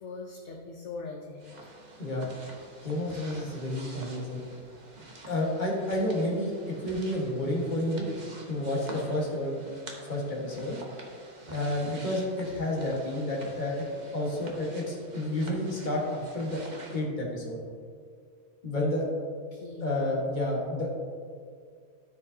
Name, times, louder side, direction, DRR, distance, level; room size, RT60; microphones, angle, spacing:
voice 1, 0.0-1.6 19.5-20.1, left 3 dB, 60° left, 0 dB, 1.0 m, -41 dB
sound 1, 1.4-17.0, right 2 dB, 35° right, 0.9 m, -47 dB
voice 2, 2.8-4.4 5.3-8.1 8.5-9.6 10.1-10.8 11.5-13.9 14.1-16.6 16.9-17.6 18.6-19.1 19.8-20.9, left 1 dB, 35° left, -3 dB, 1.5 m, -30 dB
13.5 x 5.0 x 2.7 m, 2.1 s
omnidirectional pair, 1.5 m